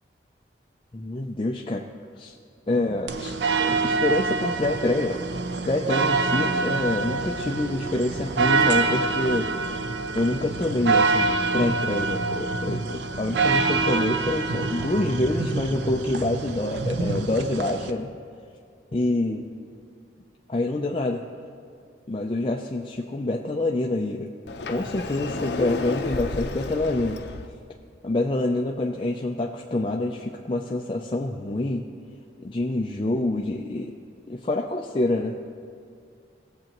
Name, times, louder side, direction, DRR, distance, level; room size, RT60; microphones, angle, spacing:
voice 1, 0.9-1.8 2.2-2.3 2.7-5.2 5.6-9.5 10.1-18.1 18.9-19.4 20.5-21.2 22.1-24.3 24.7-27.2 28.0-31.8 32.4-33.9 34.3-35.4, left 2 dB, 30° left, 0 dB, 0.4 m, -26 dB
sound 1, 3.1-17.9, right 4 dB, 75° right, 0.5 m, -26 dB
Sliding door, 24.5-27.5, left 2 dB, 70° left, 0.6 m, -32 dB
19.0 x 7.6 x 3.0 m, 2.3 s
head